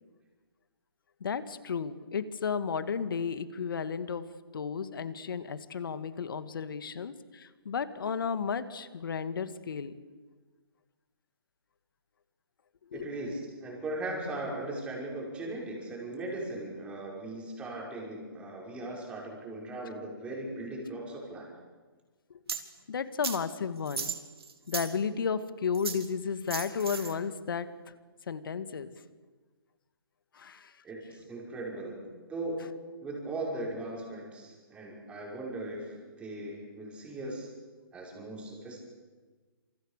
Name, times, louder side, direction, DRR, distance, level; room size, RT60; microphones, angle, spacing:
voice 1, 1.2-4.2 4.5-9.9 12.9-13.1 22.9-24.1 24.7-27.7 28.3-28.9 30.3-30.7, left 6 dB, 60° left, 11 dB, 2.1 m, -33 dB
voice 2, 12.9-21.5 30.8-32.0 32.3-37.5 37.9-38.8, right 2 dB, 10° right, -2 dB, 6.1 m, -38 dB
sound 1, 22.5-22.6 23.2-23.4 23.9-24.9 25.7-26.1 26.5-27.1, right 6 dB, 80° right, 3.9 m, -35 dB
28.5 x 27.0 x 6.8 m, 1.4 s
hypercardioid pair, 160°, 13 cm